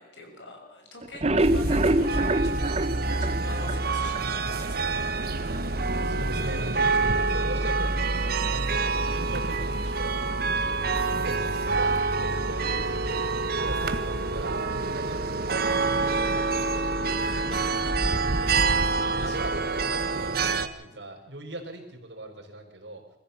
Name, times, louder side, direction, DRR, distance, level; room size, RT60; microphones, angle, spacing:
voice 1, 0.0-5.1 11.0-11.5 17.2-18.1 19.0-19.5, left 2 dB, 85° left, 3 dB, 6.4 m, -44 dB
sound 1, 1.0-4.2 4.6-4.7 5.1-5.2 5.5-5.6, right 1 dB, 35° right, 1.1 m, -25 dB
sound 2, 1.4-20.7, right 3 dB, 60° right, 1.6 m, -27 dB
voice 2, 4.7-10.2 11.2-16.9 18.0-18.1 19.2-23.0, right 1 dB, 75° right, 2 dB, 5.3 m, -40 dB
24.0 x 15.0 x 7.3 m, 0.89 s
head